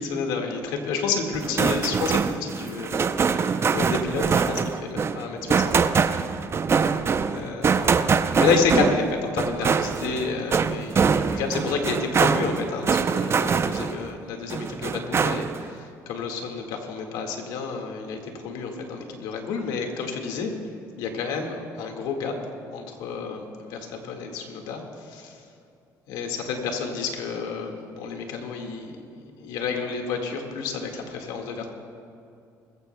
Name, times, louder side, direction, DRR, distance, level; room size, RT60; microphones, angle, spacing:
voice 1, 0.0-6.3 7.2-20.5 21.0-22.4 22.7-25.4 26.1-31.7, left 5 dB, 80° left, 3 dB, 1.9 m, -30 dB
sound 1, 1.3-14.1 14.5-15.7, right 5 dB, 35° right, 0.6 m, -24 dB
21.0 x 15.0 x 2.3 m, 2.5 s
supercardioid pair, 80°, 7 cm